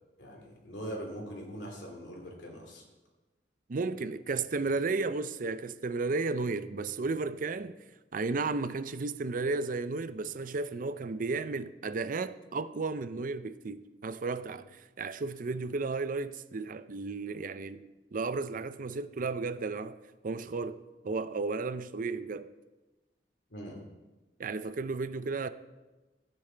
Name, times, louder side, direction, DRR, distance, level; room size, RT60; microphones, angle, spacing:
voice 1, 0.2-2.8 23.5-23.9, equal, 70° left, 2.6 m, -42 dB
voice 2, 3.7-7.8 8.1-17.8 18.1-20.0 20.2-22.5 24.4-25.5, right 3 dB, 45° right, 0.5 m, -33 dB
14.5 x 8.8 x 4.5 m
head